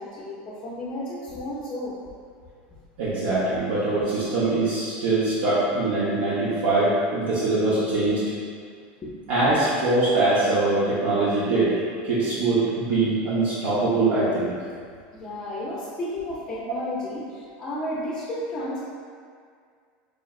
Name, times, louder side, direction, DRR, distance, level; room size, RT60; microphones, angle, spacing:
voice 1, 0.0-2.0 8.0-8.1 9.0-9.1 15.1-18.8, left 1 dB, 20° left, -7 dB, 0.5 m, -32 dB
voice 2, 3.0-8.2 9.3-14.5, right 2 dB, 75° right, -10 dB, 0.8 m, -23 dB
4.8 x 3.1 x 2.4 m, 2.1 s
supercardioid pair, 180°, 5 cm